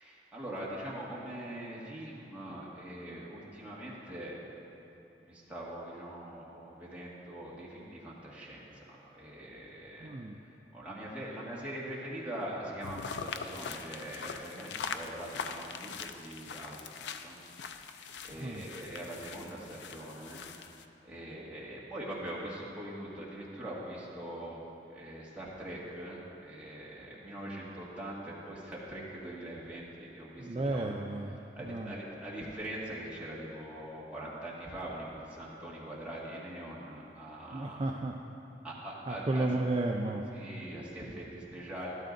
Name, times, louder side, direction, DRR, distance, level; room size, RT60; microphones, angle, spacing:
voice 1, 0.0-4.9 5.2-10.1 10.7-17.4 17.7-20.4 21.0-24.6 24.9-30.9 31.6-37.8 38.6-39.5 40.3-41.9, right 1 dB, 10° right, -7 dB, 1.7 m, -42 dB
voice 2, 10.0-10.4 18.3-18.7 30.4-31.9 37.5-38.4 39.1-40.2, right 2 dB, 30° right, 1 dB, 0.4 m, -33 dB
sound 1, 12.8-20.8, left 5 dB, 75° left, 0.4 m, -42 dB
12.5 x 12.0 x 2.6 m, 2.8 s
head